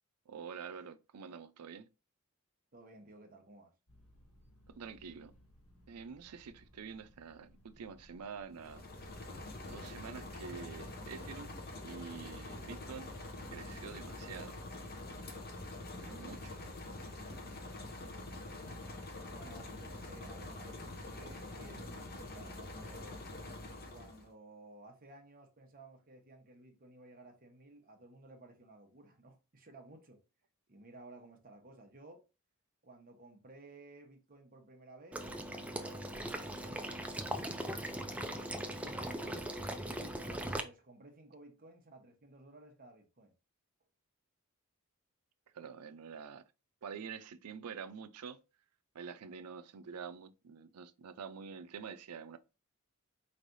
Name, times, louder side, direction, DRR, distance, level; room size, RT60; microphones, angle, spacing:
voice 1, 0.3-1.9 4.7-5.3 5.9-8.8 9.7-13.1 13.5-14.6 16.0-16.6 45.5-46.4 46.8-48.4 48.9-52.4, right 6 dB, 90° right, 0.5 m, -47 dB
voice 2, 2.7-3.8 19.2-23.2 23.9-30.2 30.7-32.2 32.8-37.3 38.8-39.5 39.9-43.3, right 2 dB, 40° right, 1.0 m, -56 dB
sound 1, 3.9-10.5, equal, 80° left, 1.6 m, -63 dB
sound 2, 8.5-24.3, left 2 dB, 45° left, 0.8 m, -45 dB
Water / Liquid, 35.1-40.6, right 1 dB, 5° right, 0.4 m, -39 dB
4.5 x 3.3 x 2.6 m
head